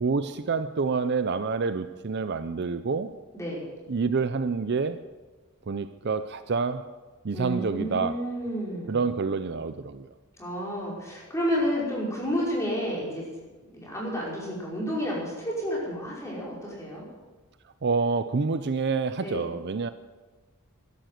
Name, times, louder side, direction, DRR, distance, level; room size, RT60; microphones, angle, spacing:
voice 1, 0.0-3.1 3.9-5.0 5.7-6.9 7.2-8.2 8.9-10.1 17.8-19.9, right 4 dB, 50° right, 12 dB, 0.5 m, -27 dB
voice 2, 3.3-3.7 7.3-9.0 10.4-13.2 13.6-17.0 19.2-19.5, equal, 15° left, -5 dB, 5.3 m, -31 dB
13.5 x 11.5 x 7.8 m, 1.3 s
head